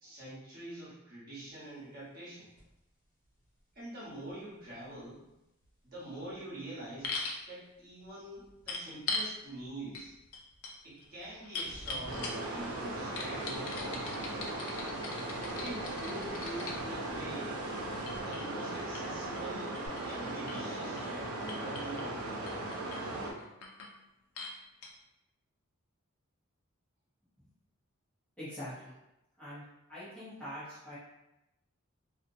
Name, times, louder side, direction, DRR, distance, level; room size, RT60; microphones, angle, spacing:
voice 1, 0.0-2.5 3.7-5.2 5.8-7.2 7.5-10.1 10.8-14.4 15.4-17.6 18.3-19.8 20.0-22.7, right 1 dB, 45° right, -8 dB, 1.0 m, -45 dB
sound 1, 2.6-2.8 3.0-7.4 7.7-19.0 19.2-19.9, equal, 55° left, 1.2 m, -54 dB
sound 2, 7.0-7.4 8.7-9.3 9.9-10.1 10.3-12.6 13.2-16.8 17.7-21.2 21.5-22.1 22.5-23.0 23.4-23.9 24.4-24.5 24.8-24.9, left 3 dB, 75° left, 0.4 m, -41 dB
sound 3, 12.0-23.3, right 2 dB, 85° right, 0.5 m, -38 dB
voice 2, 28.4-28.9 29.4-29.6 29.9-31.0, equal, 5° left, -12 dB, 0.7 m, -43 dB
2.6 x 2.1 x 2.6 m, 0.92 s
head